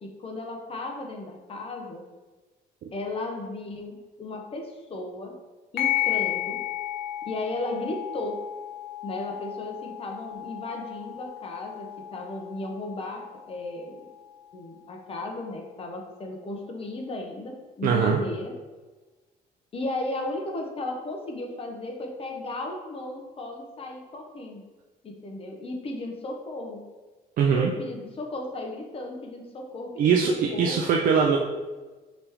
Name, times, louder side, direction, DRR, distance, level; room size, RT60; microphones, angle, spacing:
voice 1, 0.0-2.0 2.9-5.4 5.7-6.6 7.2-8.4 9.0-14.0 14.5-18.5 19.7-24.6 25.0-26.8 27.5-30.2 30.5-30.8, left 2 dB, 35° left, 2 dB, 0.8 m, -35 dB
sound 1, 5.8-14.8, left 13 dB, 70° left, 0.7 m, -34 dB
voice 2, 17.8-18.2 27.4-27.7 30.0-31.4, right 6 dB, 55° right, 1 dB, 0.5 m, -21 dB
5.0 x 3.4 x 3.0 m, 1.2 s
cardioid pair, 110°, 17 cm